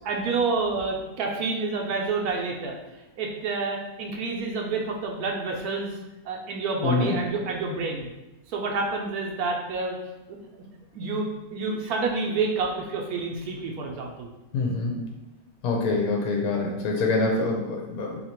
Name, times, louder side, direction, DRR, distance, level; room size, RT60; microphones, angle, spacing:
voice 1, 0.0-2.8 3.2-5.9 6.3-8.1 8.5-10.0 10.9-14.3, right 4 dB, 70° right, 1 dB, 0.9 m, -28 dB
voice 2, 6.8-7.2 14.5-15.0 15.6-18.2, left 3 dB, 70° left, 0 dB, 1.0 m, -25 dB
2.8 x 2.8 x 4.3 m, 1.0 s
omnidirectional pair, 1.9 m